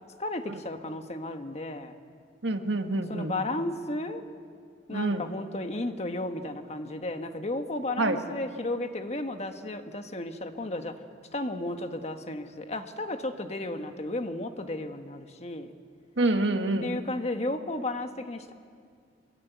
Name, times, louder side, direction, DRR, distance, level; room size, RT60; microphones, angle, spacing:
voice 1, 0.2-1.9 3.1-4.3 4.9-11.0 11.3-15.7 16.8-18.5, left 2 dB, 35° left, 7 dB, 1.4 m, -33 dB
voice 2, 2.4-3.3 4.9-5.3 8.0-8.2 16.2-16.9, right 2 dB, 80° right, 6 dB, 1.7 m, -27 dB
25.0 x 21.5 x 9.3 m, 2.1 s
head